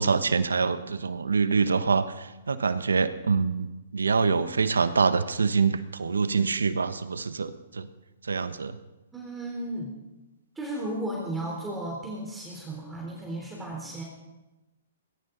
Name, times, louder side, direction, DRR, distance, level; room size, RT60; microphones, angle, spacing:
voice 1, 0.0-3.7 3.9-7.9 8.3-8.8, right 5 dB, 85° right, 13 dB, 1.0 m, -25 dB
voice 2, 9.1-9.9 10.6-14.0, right 1 dB, 10° right, -3 dB, 3.7 m, -34 dB
20.0 x 17.0 x 4.0 m, 1.0 s
hypercardioid pair, 130°, 0 cm